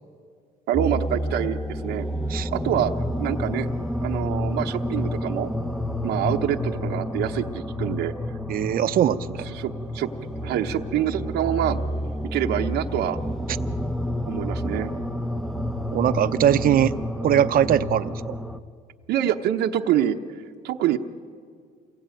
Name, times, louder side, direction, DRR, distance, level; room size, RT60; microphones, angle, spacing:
sound 1, 0.7-18.6, equal, ahead, 1.0 m, -29 dB
voice 1, 0.7-2.1 2.5-3.7 4.0-5.5 6.0-8.1 9.5-10.1 10.4-11.8 12.3-13.2 14.3-14.9 19.1-20.2 20.6-21.0, right 11 dB, 80° right, 3 dB, 1.1 m, -26 dB
voice 2, 8.5-9.5 15.9-17.0 17.2-18.3, right 10 dB, 60° right, 12 dB, 0.8 m, -21 dB
28.0 x 22.0 x 9.2 m, 2.1 s
cardioid pair, 110°, 17 cm